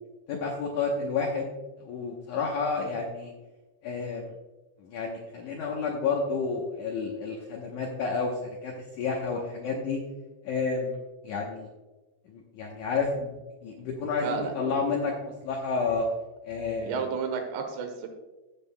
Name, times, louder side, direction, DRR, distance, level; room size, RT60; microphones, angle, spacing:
voice 1, 0.3-3.3 3.8-4.3 4.8-10.0 10.4-11.0 11.2-11.7 12.3-16.1 16.4-17.0, left 4 dB, 80° left, -1 dB, 1.7 m, -30 dB
voice 2, 14.2-14.5 16.8-18.1, right 5 dB, 85° right, 4 dB, 3.1 m, -31 dB
15.0 x 7.4 x 2.2 m, 1.2 s
omnidirectional pair, 4.9 m